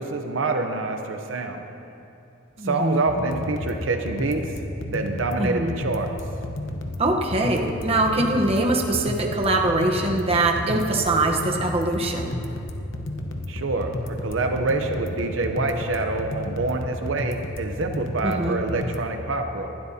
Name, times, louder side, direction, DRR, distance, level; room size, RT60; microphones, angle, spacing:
voice 1, 0.0-1.6 2.6-4.5 4.9-6.1 13.5-19.7, right 3 dB, 70° right, 5 dB, 0.7 m, -26 dB
voice 2, 2.6-3.0 5.4-5.7 7.0-12.4 18.2-18.6, right 2 dB, 30° right, 1 dB, 1.0 m, -23 dB
sound 1, 3.1-19.1, left 1 dB, 70° left, 1.0 m, -32 dB
20.0 x 12.0 x 2.8 m, 2.8 s
head